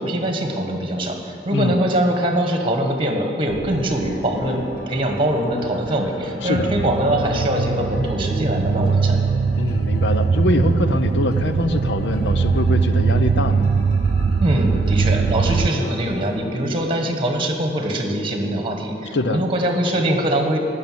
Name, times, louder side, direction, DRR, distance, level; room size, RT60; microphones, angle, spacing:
voice 1, 0.0-9.2 14.4-20.6, right 1 dB, 30° right, 3 dB, 1.6 m, -22 dB
sound 1, 3.5-15.7, right 5 dB, 50° right, 0.3 m, -21 dB
sound 2, 3.6-16.4, left 1 dB, 55° left, 1.8 m, -42 dB
voice 2, 6.4-6.7 9.6-13.7 19.1-19.5, left 2 dB, 85° left, 10 dB, 0.8 m, -23 dB
13.5 x 6.6 x 9.5 m, 2.7 s
head